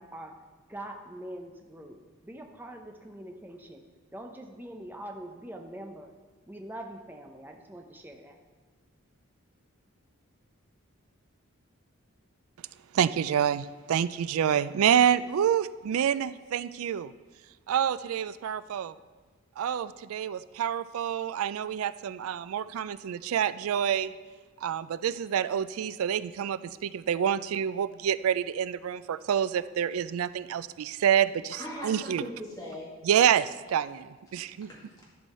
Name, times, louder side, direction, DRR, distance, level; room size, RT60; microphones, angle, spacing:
voice 1, 0.0-3.8 4.1-6.1 6.5-8.4, right 1 dB, 10° right, 3 dB, 0.6 m, -43 dB
voice 2, 12.9-17.1 17.7-18.9 19.6-24.1 24.6-32.2 33.0-34.7, right 9 dB, 80° right, 16 dB, 0.3 m, -27 dB
voice 3, 31.6-32.9 34.4-35.0, equal, 15° left, -5 dB, 1.8 m, -40 dB
11.0 x 5.5 x 4.2 m, 1.4 s
head